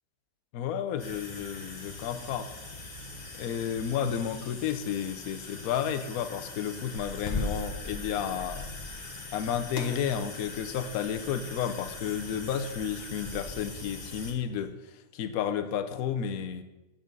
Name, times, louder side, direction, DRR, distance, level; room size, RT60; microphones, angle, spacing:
voice 1, 0.5-2.5 3.4-8.7 9.3-14.7 15.1-16.6, left 8 dB, 65° left, 8 dB, 1.0 m, -32 dB
sound 1, 1.0-14.3, left 2 dB, 25° left, 1.1 m, -40 dB
8.7 x 7.2 x 5.3 m, 1.0 s
omnidirectional pair, 2.0 m